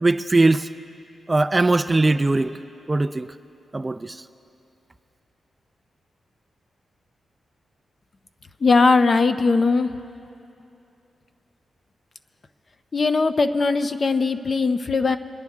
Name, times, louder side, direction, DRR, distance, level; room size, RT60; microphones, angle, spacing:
voice 1, 0.0-0.7 1.3-2.6 2.9-3.3 3.7-4.2, right 2 dB, 20° right, 10 dB, 0.3 m, -20 dB
voice 2, 8.6-9.9 12.9-15.2, left 4 dB, 40° left, 9 dB, 0.5 m, -19 dB
24.5 x 10.5 x 3.6 m, 2.8 s
wide cardioid pair, 120°, 0 cm